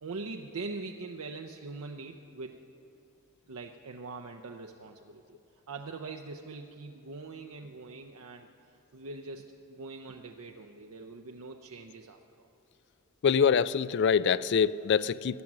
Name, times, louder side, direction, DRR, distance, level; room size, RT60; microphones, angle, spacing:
voice 1, 0.0-2.6 3.5-5.2 5.7-12.5, right 3 dB, 80° right, 3 dB, 0.7 m, -42 dB
voice 2, 13.2-15.4, left 7 dB, 50° left, 17 dB, 0.4 m, -25 dB
18.5 x 12.0 x 6.1 m, 2.9 s
head